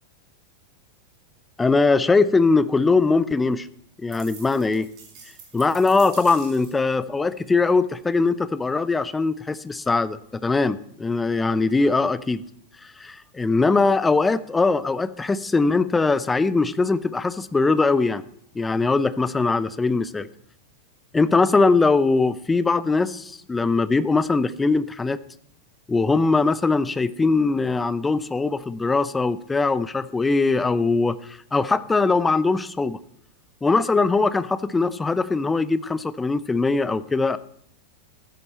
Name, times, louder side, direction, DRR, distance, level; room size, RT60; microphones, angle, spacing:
voice 1, 1.6-3.7 4.0-4.9 5.5-12.4 12.8-18.2 18.5-20.3 21.1-25.2 25.9-33.0 33.6-37.4, left 3 dB, 10° left, 17 dB, 0.6 m, -21 dB
sound 1, 4.1-6.9, right 5 dB, 35° right, 5.2 m, -45 dB
14.5 x 9.8 x 4.3 m, 0.66 s
figure-of-eight pair, 90°, 0 cm